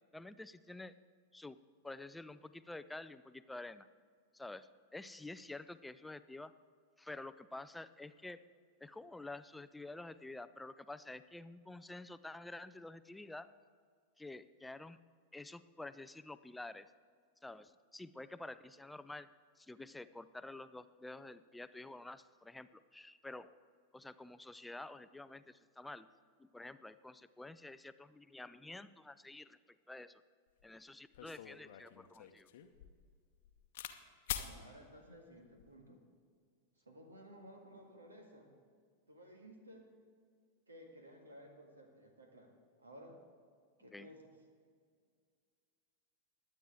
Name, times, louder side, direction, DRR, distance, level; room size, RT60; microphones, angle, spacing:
voice 1, 0.1-0.9 1.3-1.6 1.8-3.9 4.3-6.5 7.0-8.4 8.8-13.5 14.2-15.0 15.3-16.9 17.4-19.3 19.6-23.6 23.9-26.1 26.4-30.2 30.6-32.5 43.9-44.1, left 2 dB, 5° left, 14 dB, 0.4 m, -49 dB
sound 1, 30.6-30.7 31.1-34.0 34.3-34.5 35.4-35.7, left 12 dB, 55° left, 0.8 m, -45 dB
voice 2, 34.3-36.1 36.8-38.5 39.1-39.9 40.7-43.2 43.8-44.3, equal, 75° right, 3 dB, 1.9 m, -56 dB
21.5 x 8.7 x 3.7 m, 2.1 s
figure-of-eight pair, 90°, 0 cm